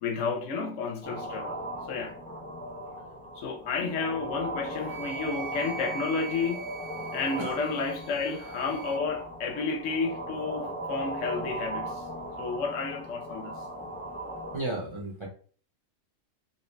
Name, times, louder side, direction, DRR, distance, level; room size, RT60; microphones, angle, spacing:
voice 1, 0.0-1.6 1.9-2.2 3.4-6.8 7.1-12.0 12.4-13.6, left 4 dB, 70° left, 0.9 m, -31 dB
sound 1, 1.0-14.6, right 1 dB, 10° left, 0.4 m, -38 dB
Wind instrument woodwind instrument, 4.8-9.0, right 5 dB, 65° right, 0.8 m, -42 dB
voice 2, 14.5-15.3, right 2 dB, 30° right, 0.7 m, -33 dB
3.0 x 2.8 x 3.2 m
omnidirectional pair, 1.3 m